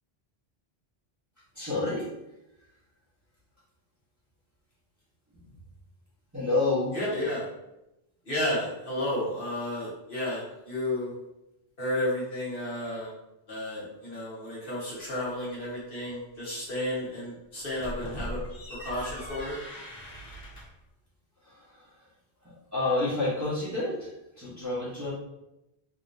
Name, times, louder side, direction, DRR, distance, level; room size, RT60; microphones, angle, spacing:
voice 1, 1.5-2.1 6.3-7.0 21.4-21.9 22.4-24.1 24.4-25.1, left 2 dB, 15° right, -9 dB, 1.0 m, -29 dB
voice 2, 6.9-7.5 8.2-11.1 11.8-13.1 13.5-18.4 18.8-19.5, left 1 dB, 60° left, -7 dB, 1.4 m, -32 dB
sound 1, 17.6-20.8, equal, 80° left, 1.3 m, -40 dB
3.6 x 2.8 x 2.5 m, 0.89 s
omnidirectional pair, 1.0 m